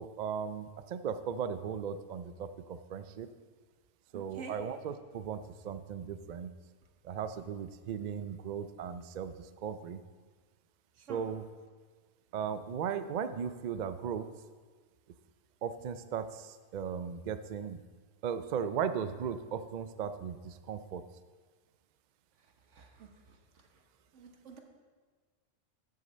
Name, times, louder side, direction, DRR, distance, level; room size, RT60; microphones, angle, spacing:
voice 1, 0.0-3.3 4.1-6.5 7.0-10.0 11.1-11.5 12.3-14.3 15.6-17.8 18.2-21.0, right 7 dB, 60° right, 11 dB, 0.5 m, -37 dB
voice 2, 4.1-4.5 11.1-11.2 22.7-23.1 24.1-24.6, right 4 dB, 85° right, 3 dB, 1.5 m, -47 dB
13.5 x 6.5 x 4.2 m, 1.4 s
omnidirectional pair, 1.2 m